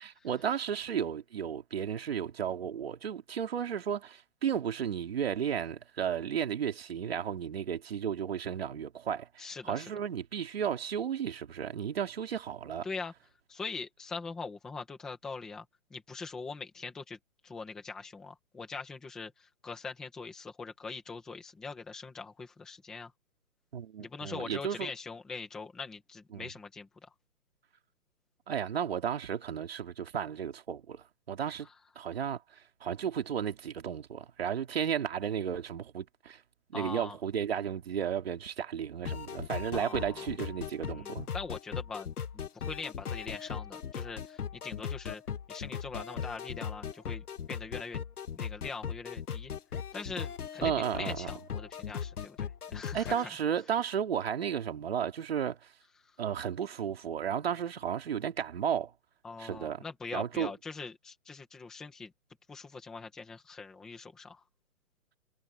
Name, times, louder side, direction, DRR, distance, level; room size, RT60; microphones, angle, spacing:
voice 1, 0.0-12.9 23.7-24.9 26.3-26.5 28.5-31.7 32.0-32.4 32.8-36.4 36.7-41.3 50.6-51.3 52.9-55.6 56.2-58.9 59.4-59.8 60.1-60.5, right 8 dB, 45° right, 2.9 m, -33 dB
voice 2, 9.4-9.9 12.8-13.1 13.5-15.6 15.9-17.2 17.4-23.1 24.0-27.1 36.7-37.2 39.7-40.2 40.8-45.2 45.5-48.0 48.4-49.5 49.9-53.3 59.2-62.1 62.5-64.4, left 4 dB, ahead, 0.9 m, -42 dB
sound 1, 39.1-53.3, left 7 dB, 90° left, 1.4 m, -38 dB
hypercardioid pair, 175°, 43 cm